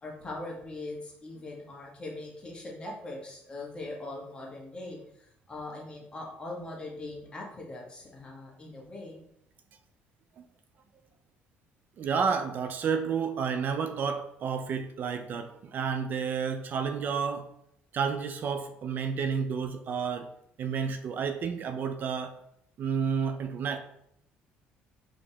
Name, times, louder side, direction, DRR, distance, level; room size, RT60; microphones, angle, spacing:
voice 1, 0.0-9.2, left 2 dB, 25° left, -2 dB, 1.3 m, -41 dB
voice 2, 12.0-17.5 17.9-20.3 20.6-22.3 22.8-23.8, right 6 dB, 50° right, 8 dB, 0.3 m, -30 dB
4.1 x 3.1 x 2.9 m, 0.74 s
cardioid pair, 100°, 4 cm